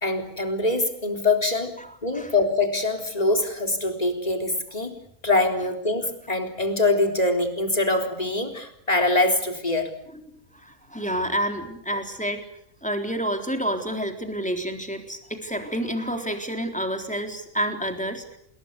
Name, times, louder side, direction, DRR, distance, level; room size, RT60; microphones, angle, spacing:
voice 1, 0.0-1.8 2.0-5.0 5.2-9.9, left 2 dB, 25° left, 4 dB, 4.1 m, -24 dB
voice 2, 1.8-2.3 10.5-12.4 12.8-18.4, equal, 5° left, 4 dB, 3.8 m, -29 dB
28.5 x 21.5 x 8.2 m, 0.71 s
omnidirectional pair, 1.5 m